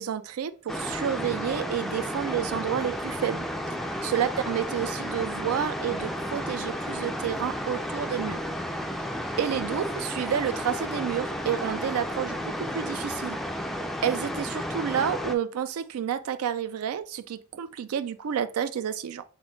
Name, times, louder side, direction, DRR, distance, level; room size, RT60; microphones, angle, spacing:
voice 1, 0.0-3.5 4.0-8.4 9.4-13.4 14.0-19.2, right 8 dB, 85° right, 0.4 m, -30 dB
sound 1, 0.7-15.4, equal, ahead, 0.3 m, -32 dB
4.2 x 3.4 x 3.0 m
head